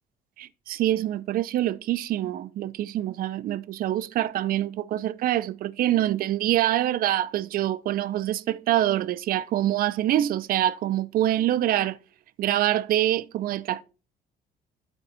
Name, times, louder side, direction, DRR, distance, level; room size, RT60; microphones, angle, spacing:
voice 1, 0.4-12.0 12.4-13.8, right 13 dB, 60° right, 0.5 m, -25 dB
11.0 x 4.4 x 4.0 m
cardioid pair, 110°, 17 cm